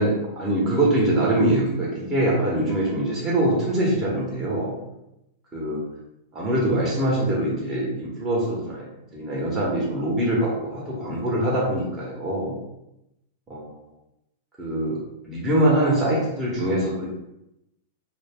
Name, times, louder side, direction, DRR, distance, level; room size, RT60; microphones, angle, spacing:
voice 1, 0.0-4.7 5.5-5.8 6.3-8.9 9.1-12.6 13.5-13.9 14.6-15.0 15.2-17.1, right 1 dB, 20° right, -5 dB, 0.9 m, -23 dB
2.2 x 2.0 x 3.4 m, 0.86 s
hypercardioid pair, 125°, 0 cm